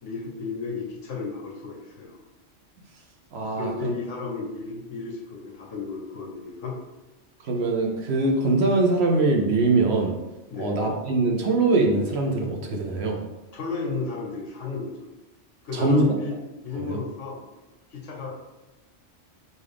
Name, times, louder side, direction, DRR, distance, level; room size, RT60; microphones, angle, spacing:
voice 1, 0.0-2.2 3.5-6.7 10.5-10.7 13.5-15.0 15.6-16.4 16.6-17.4 17.9-18.3, left 4 dB, 75° left, -2 dB, 1.4 m, -33 dB
voice 2, 3.3-4.0 7.4-10.2 10.6-13.2 15.7-16.1 16.7-17.0, right 2 dB, 65° right, 1 dB, 1.0 m, -22 dB
5.4 x 2.6 x 3.4 m, 1.0 s
omnidirectional pair, 1.3 m